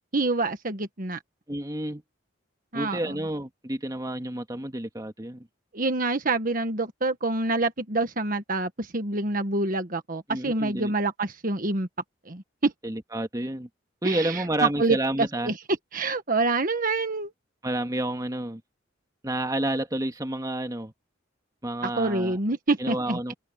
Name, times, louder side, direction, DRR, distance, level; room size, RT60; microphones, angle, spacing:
voice 1, 0.1-1.2 2.7-3.2 5.7-11.9 12.3-12.7 14.0-15.5 15.9-17.3 21.8-23.3, right 3 dB, 45° right, 1.5 m, -27 dB
voice 2, 1.5-2.0 2.7-5.5 10.3-10.9 12.8-13.7 14.0-15.5 17.6-18.6 19.2-20.9 21.6-22.4 22.8-23.3, right 1 dB, 20° right, 1.8 m, -30 dB
head